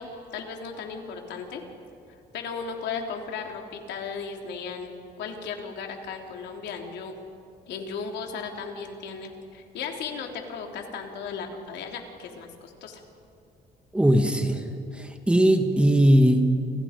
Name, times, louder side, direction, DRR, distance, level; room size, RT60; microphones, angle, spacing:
voice 1, 0.0-1.6 2.3-7.1 7.7-13.0, left 5 dB, 75° left, 2 dB, 3.3 m, -36 dB
voice 2, 13.9-14.7 14.9-16.4, right 1 dB, 5° right, 5 dB, 1.5 m, -19 dB
29.5 x 28.0 x 5.2 m, 2.5 s
cardioid pair, 165°, 18 cm